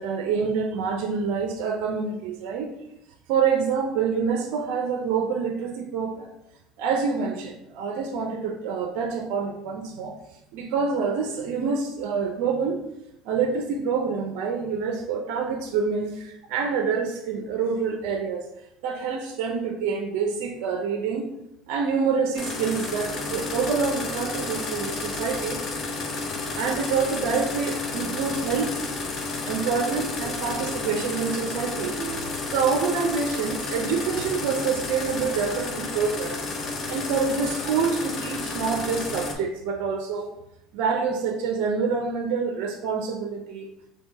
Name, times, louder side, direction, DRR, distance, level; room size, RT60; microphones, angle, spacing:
voice 1, 0.0-2.7 3.3-6.3 6.8-10.1 10.5-12.8 13.2-18.5 18.8-21.3 21.7-25.6 26.6-28.8 29.4-36.4 36.9-40.3 40.7-43.7, right 5 dB, 75° right, 3 dB, 0.5 m, -27 dB
sound 1, 22.3-39.3, left 3 dB, 40° left, 0.8 m, -31 dB
3.5 x 2.8 x 4.5 m, 0.83 s
supercardioid pair, 110°, 0 cm